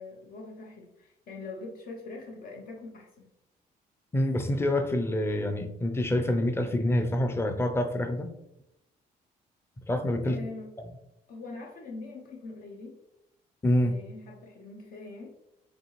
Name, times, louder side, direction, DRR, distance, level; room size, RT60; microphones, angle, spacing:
voice 1, 0.0-3.3 10.2-10.7 11.3-13.0 13.8-15.3, left 3 dB, 65° left, 0 dB, 0.8 m, -43 dB
voice 2, 4.1-8.3 9.9-10.4 13.6-14.0, left 1 dB, 15° left, 6 dB, 0.6 m, -26 dB
5.2 x 2.8 x 3.1 m, 0.83 s
cardioid pair, 120°, 16 cm